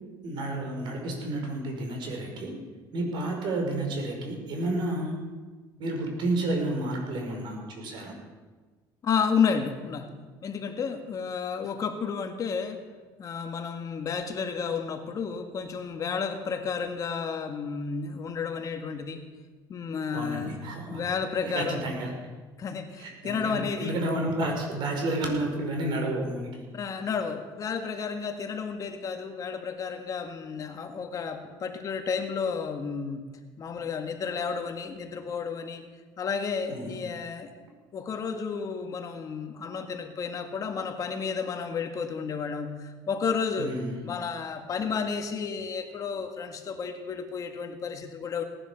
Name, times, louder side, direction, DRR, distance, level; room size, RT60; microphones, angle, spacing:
voice 1, 0.2-2.5 2.9-5.2 5.8-8.1 20.1-21.0 21.4-22.1 23.0-26.5 36.7-37.0 43.6-44.0, right 1 dB, 60° right, 2 dB, 5.4 m, -31 dB
voice 2, 9.0-10.1 10.4-12.8 13.2-19.2 19.7-21.9 22.6-24.0 26.7-33.3 33.6-35.8 36.2-37.5 37.9-43.7 44.0-48.4, left 6 dB, 40° left, 5 dB, 1.8 m, -31 dB
18.0 x 11.0 x 7.0 m, 1.4 s
cardioid pair, 125°, 9 cm